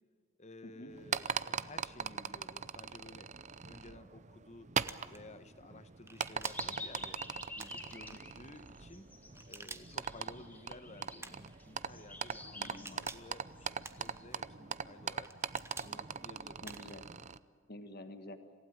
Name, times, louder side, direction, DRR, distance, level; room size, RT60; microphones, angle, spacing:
voice 1, 0.4-3.3 3.6-4.8 5.1-7.2 7.6-9.1 9.5-15.3 15.8-16.6, left 2 dB, 35° left, 11 dB, 1.2 m, -54 dB
sound 1, 0.9-17.4, right 6 dB, 35° right, 0.6 m, -41 dB
sound 2, 4.9-5.2 6.1-6.7 7.6-8.2 9.3-10.1 11.2-11.6 12.6-13.3 13.8-14.4 15.2-15.9 16.6-17.0, right 3 dB, 10° right, 1.0 m, -49 dB
sound 3, 6.4-14.3, left 2 dB, 10° left, 2.2 m, -50 dB
voice 2, 12.5-13.1 16.6-17.0 17.7-18.4, left 1 dB, 50° left, 9 dB, 1.5 m, -49 dB
27.0 x 16.5 x 9.2 m, 2.1 s
head